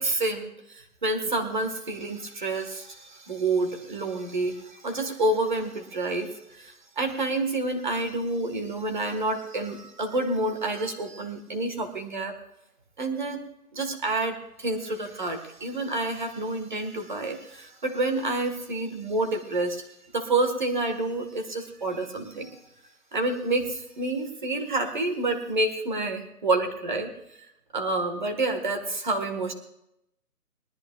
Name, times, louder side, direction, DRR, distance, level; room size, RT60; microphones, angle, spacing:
voice 1, 0.0-12.3 13.0-13.4 13.7-22.6 23.1-27.1 27.7-29.5, right 2 dB, 30° right, 5 dB, 1.7 m, -28 dB
22.5 x 13.0 x 2.4 m, 0.82 s
hypercardioid pair, 175°, 46 cm